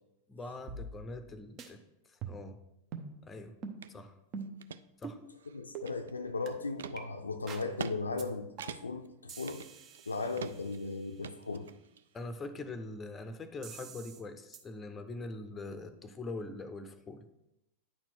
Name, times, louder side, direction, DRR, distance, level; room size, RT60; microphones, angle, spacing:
voice 1, 0.3-1.8 2.3-2.6 3.2-3.5 3.9-4.1 5.0-5.2 12.1-17.2, left 2 dB, 15° left, 10 dB, 0.6 m, -43 dB
sound 1, 0.7-1.3 1.6-1.7 2.2-2.6 2.9-3.1 3.6-3.8 4.3-4.6 5.0-5.2 5.7-5.9 6.5-6.6 7.0-7.1 7.5-7.7 8.2-8.3 8.6-8.9 9.3-11.1 13.6-14.2 14.5-14.6, right 5 dB, 35° right, 0.8 m, -45 dB
sound 2, 3.8-3.9 4.4-4.8 5.4-6.3 6.8-7.0 7.6-8.0 8.2-8.3 8.6-9.1 9.5-10.0 10.4-10.8 11.2-12.0, right 8 dB, 65° right, 0.3 m, -44 dB
voice 2, 5.5-9.6 10.1-11.7, left 3 dB, 75° left, 7 dB, 0.5 m, -37 dB
9.7 x 4.4 x 4.3 m, 0.87 s
figure-of-eight pair, 90°, 0 cm